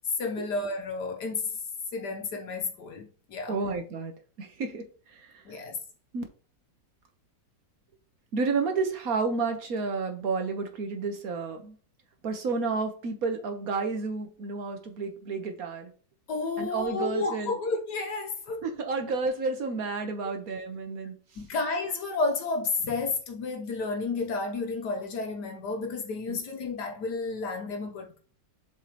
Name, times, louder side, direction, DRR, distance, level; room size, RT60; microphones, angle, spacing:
voice 1, 0.2-1.6 1.9-3.6 5.4-5.8 16.3-18.7 21.4-28.2, left 3 dB, 70° left, 1.4 m, -31 dB
voice 2, 3.5-4.1 4.4-5.4 6.1-6.2 8.3-11.8 12.2-15.9 16.6-17.5 18.6-21.2 26.3-26.4, right 4 dB, 55° right, 1.4 m, -31 dB
7.2 x 5.2 x 3.0 m
omnidirectional pair, 1.9 m